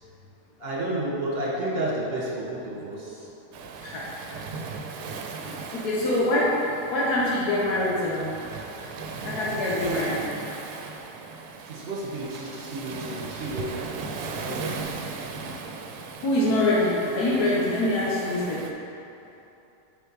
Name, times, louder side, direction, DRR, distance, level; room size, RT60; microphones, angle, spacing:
voice 1, 0.6-3.3 11.7-13.9 14.3-14.9, right 1 dB, 40° right, -6 dB, 1.7 m, -31 dB
Waves surf, 3.5-18.7, right 4 dB, 80° right, 1.1 m, -37 dB
voice 2, 5.7-8.3 9.2-10.2 16.2-18.6, left 1 dB, 80° left, -6 dB, 1.5 m, -24 dB
6.7 x 4.5 x 4.7 m, 2.9 s
omnidirectional pair, 1.7 m